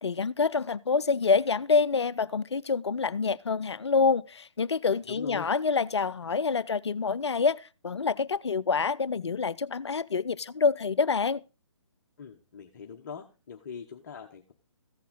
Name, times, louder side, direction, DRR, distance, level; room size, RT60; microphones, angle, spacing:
voice 1, 0.0-11.4, left 5 dB, 60° left, 0.6 m, -27 dB
voice 2, 5.1-5.5 12.2-14.5, left 6 dB, 35° left, 1.0 m, -42 dB
15.0 x 8.2 x 3.9 m
figure-of-eight pair, 135°, 16 cm